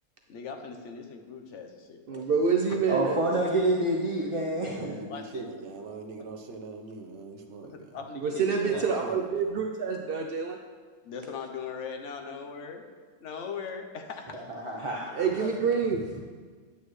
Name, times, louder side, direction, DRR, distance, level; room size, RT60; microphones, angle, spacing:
voice 1, 0.3-2.8 5.1-5.5 7.9-8.8 11.0-12.8 13.2-14.4 15.1-15.6, left 6 dB, 55° left, 4 dB, 1.1 m, -40 dB
voice 2, 2.1-3.2 8.2-10.6 15.2-16.2, right 5 dB, 75° right, 2 dB, 0.5 m, -27 dB
voice 3, 2.9-5.0 14.3-15.3, right 1 dB, 30° right, -3 dB, 0.7 m, -28 dB
voice 4, 4.6-8.0 8.3-9.6, right 3 dB, 50° right, 3 dB, 1.1 m, -41 dB
10.5 x 8.4 x 3.2 m, 1.5 s
omnidirectional pair, 1.7 m